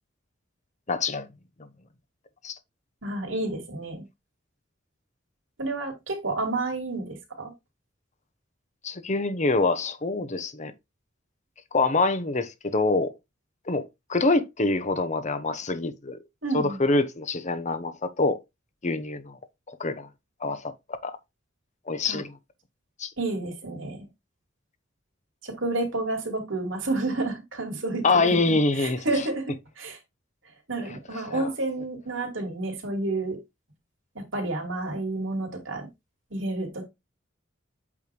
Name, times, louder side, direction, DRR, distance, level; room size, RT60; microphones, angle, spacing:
voice 1, 0.9-1.3 1.6-1.7 2.4-2.6 8.8-10.7 11.7-13.1 13.7-13.8 14.1-16.2 16.5-18.4 18.8-19.4 19.7-20.1 20.4-20.7 21.0-21.2 21.9-22.3 23.0-23.1 28.0-29.0 31.3-31.5, left 3 dB, 35° left, 1.0 m, -25 dB
voice 2, 3.0-4.0 5.6-7.5 16.4-16.8 22.1-22.2 23.2-24.1 25.4-30.0 30.7-33.4 34.1-35.9 36.3-36.8, right 2 dB, 70° right, 2.9 m, -30 dB
8.5 x 3.4 x 4.6 m
head